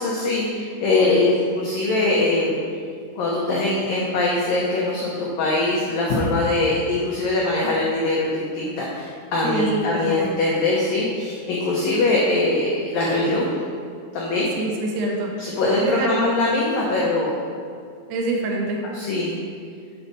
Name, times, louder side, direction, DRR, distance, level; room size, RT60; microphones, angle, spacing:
voice 1, 0.0-2.6 3.2-13.5 14.1-14.5 15.4-17.4 18.9-19.4, left 2 dB, 85° left, -4 dB, 2.0 m, -22 dB
voice 2, 9.4-10.3 14.6-15.3 15.8-16.2 18.1-18.8, right 2 dB, 75° right, 0 dB, 3.0 m, -25 dB
7.7 x 5.6 x 5.4 m, 2.3 s
omnidirectional pair, 5.5 m